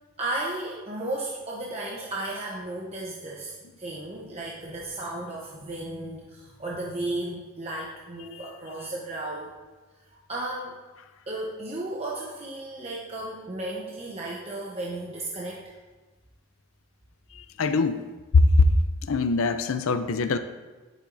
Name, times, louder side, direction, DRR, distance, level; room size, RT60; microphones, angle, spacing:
voice 1, 0.2-9.5 10.3-10.8 11.3-15.7, right 2 dB, 30° right, -4 dB, 0.9 m, -34 dB
voice 2, 17.3-18.1 18.3-18.7 19.0-20.4, left 3 dB, 70° left, 10 dB, 0.5 m, -22 dB
10.5 x 9.2 x 2.6 m, 1.3 s
head